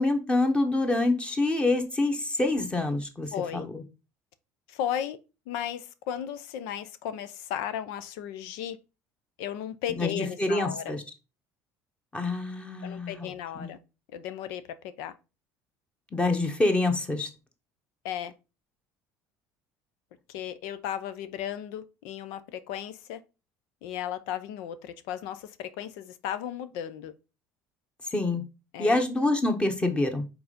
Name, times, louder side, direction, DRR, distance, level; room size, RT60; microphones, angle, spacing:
voice 1, 0.0-3.8 10.0-11.0 12.1-13.3 13.6-13.7 16.1-17.3 28.1-28.4 28.8-30.2, left 2 dB, 15° left, 1.3 m, -26 dB
voice 2, 3.3-3.7 4.7-5.2 5.5-8.8 9.4-10.9 12.8-13.8 14.1-15.1 18.0-18.3 20.3-23.2 23.8-27.1 28.7-29.0, left 10 dB, 80° left, 0.7 m, -35 dB
4.8 x 3.9 x 5.2 m
cardioid pair, 120°, 7 cm